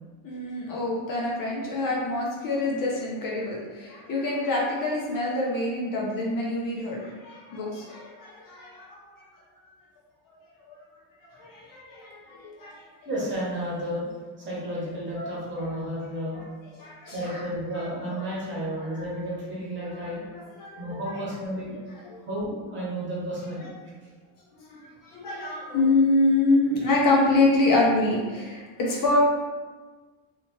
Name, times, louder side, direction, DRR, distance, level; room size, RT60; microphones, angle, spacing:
voice 1, 0.2-9.0 11.3-12.8 15.2-15.3 16.3-16.4 16.8-17.4 18.1-18.2 20.6-20.8 24.7-24.8 25.1-29.2, left 2 dB, 45° left, -3 dB, 0.7 m, -26 dB
voice 2, 13.0-14.0 14.4-16.4 17.1-20.2 20.8-21.7 22.3-23.7, equal, 25° right, -6 dB, 1.1 m, -32 dB
3.3 x 2.8 x 3.0 m, 1.3 s
cardioid pair, 160°, 45 cm